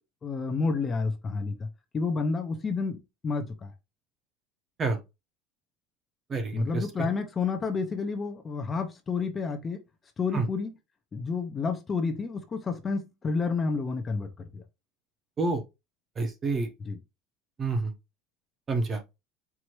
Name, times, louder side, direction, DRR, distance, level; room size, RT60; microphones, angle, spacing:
voice 1, 0.2-1.7 1.9-3.7 6.5-9.8 10.2-10.7 11.1-14.6 16.9-17.0, left 4 dB, 20° left, 0.6 m, -30 dB
voice 2, 6.3-7.1 10.3-10.5 15.4-15.6 16.2-16.7 17.6-17.9 18.7-19.0, right 3 dB, 25° right, 0.9 m, -28 dB
4.6 x 2.7 x 3.0 m
cardioid pair, 150°, 0 cm